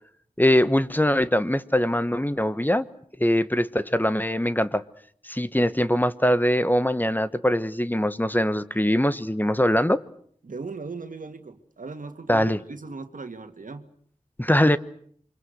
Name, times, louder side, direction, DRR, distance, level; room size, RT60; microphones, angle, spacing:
voice 1, 0.4-2.9 3.2-4.8 5.2-10.0 12.3-12.6 14.4-14.8, left 1 dB, 15° left, 1.3 m, -22 dB
voice 2, 10.4-13.9, right 4 dB, 85° right, 2.0 m, -38 dB
28.0 x 25.0 x 6.5 m
wide cardioid pair, 55°, 13 cm